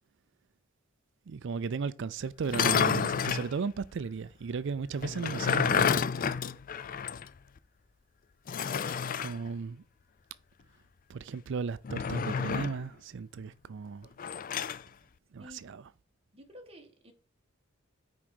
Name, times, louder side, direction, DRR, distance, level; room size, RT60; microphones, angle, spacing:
voice 1, 1.3-6.0 9.2-9.8 11.1-14.1 15.3-15.8, right 5 dB, 65° right, 0.4 m, -35 dB
sound 1, 2.4-3.5 5.0-7.3 7.6-7.7 8.5-9.4 11.8-12.8 14.2-14.8, left 7 dB, 45° left, 0.4 m, -29 dB
voice 2, 15.4-15.7 16.3-17.1, equal, 30° right, 2.0 m, -51 dB
6.2 x 4.9 x 6.0 m
head